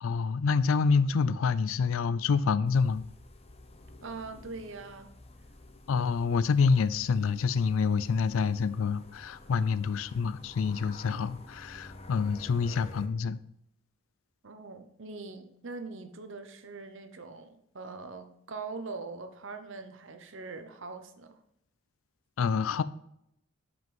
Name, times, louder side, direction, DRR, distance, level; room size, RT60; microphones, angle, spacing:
voice 1, 0.0-3.0 5.9-13.4 22.4-22.8, left 5 dB, 75° left, 0.4 m, -27 dB
sound 1, 2.6-13.1, left 2 dB, 30° left, 0.8 m, -51 dB
voice 2, 4.0-5.1 14.4-21.4, right 3 dB, 65° right, 0.9 m, -42 dB
6.0 x 5.2 x 5.4 m
head